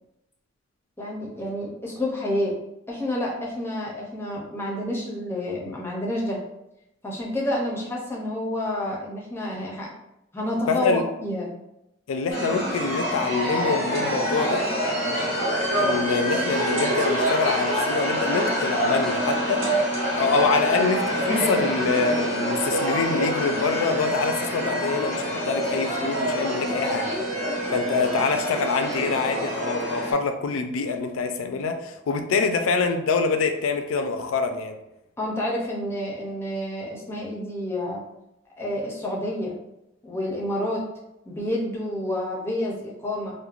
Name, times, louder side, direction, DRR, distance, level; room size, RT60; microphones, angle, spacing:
voice 1, 1.0-2.6 2.9-6.4 7.0-9.9 10.3-11.5 35.2-38.0 38.6-39.6 40.0-40.8 41.3-43.3, left 1 dB, 10° left, -3 dB, 0.5 m, -29 dB
voice 2, 10.7-11.0 12.1-14.7 15.8-19.6 20.1-27.1 27.7-34.8, left 4 dB, 85° left, 7 dB, 0.3 m, -25 dB
sound 1, 12.3-30.1, equal, 75° right, 1.5 m, -26 dB
3.0 x 2.1 x 2.4 m, 0.87 s
head